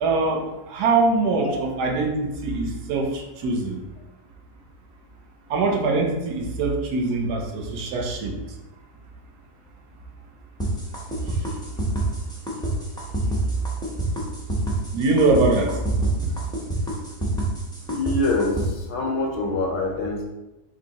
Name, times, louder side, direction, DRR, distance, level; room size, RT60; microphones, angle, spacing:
voice 1, 0.0-3.8 5.5-8.3 14.9-16.1, right 3 dB, 70° right, 2 dB, 1.2 m, -23 dB
sound 1, 10.6-18.7, right 2 dB, 5° left, 0.4 m, -28 dB
voice 2, 17.9-20.2, left 2 dB, 80° left, 0 dB, 1.5 m, -25 dB
3.4 x 2.7 x 4.0 m, 1.0 s
omnidirectional pair, 1.9 m